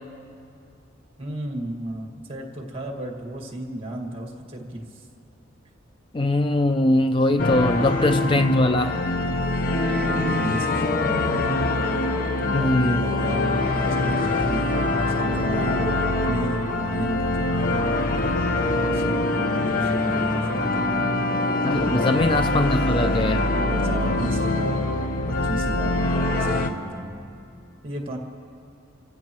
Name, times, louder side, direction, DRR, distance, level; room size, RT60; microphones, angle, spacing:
voice 1, 1.2-5.1 9.9-11.4 12.1-14.7 15.0-18.4 18.9-20.8 21.8-22.0 23.4-27.2 27.8-28.2, right 1 dB, 30° right, 1 dB, 1.9 m, -34 dB
voice 2, 6.1-9.0 12.5-13.0 21.6-23.5, left 2 dB, 25° left, 9 dB, 0.3 m, -21 dB
sound 1, 7.4-26.7, left 2 dB, 45° left, 0.9 m, -24 dB
29.0 x 15.5 x 3.1 m, 2.5 s
head